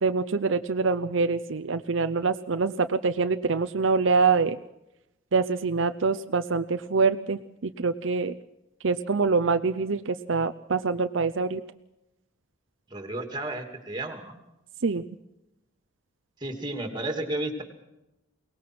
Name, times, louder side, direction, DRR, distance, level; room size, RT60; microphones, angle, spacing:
voice 1, 0.0-4.6 5.3-8.3 8.8-11.6 14.8-15.0, right 4 dB, 70° right, 10 dB, 0.7 m, -25 dB
voice 2, 12.9-14.4 16.4-17.6, right 1 dB, 20° right, 6 dB, 2.7 m, -32 dB
23.0 x 19.0 x 6.1 m, 0.91 s
head